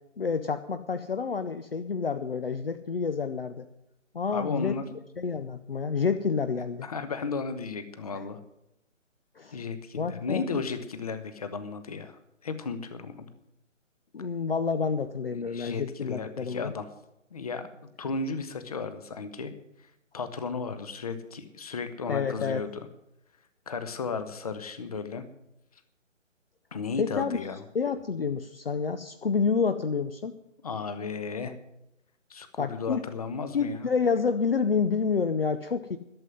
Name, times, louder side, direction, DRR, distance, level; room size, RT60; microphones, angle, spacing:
voice 1, 0.2-3.7 4.1-4.8 5.2-6.9 9.4-9.6 10.0-10.5 14.1-16.7 22.1-22.6 27.0-27.4 27.7-30.4 32.6-33.0 33.5-36.0, left 5 dB, 50° left, 10 dB, 0.7 m, -28 dB
voice 2, 4.3-4.8 6.8-8.4 9.5-13.3 15.3-16.9 17.3-17.7 18.0-19.5 19.8-22.7 23.7-25.3 26.7-27.6 30.6-31.5 32.3-33.9, left 4 dB, 30° left, 11 dB, 1.0 m, -34 dB
12.5 x 7.5 x 9.2 m, 0.85 s
figure-of-eight pair, 145°, 38 cm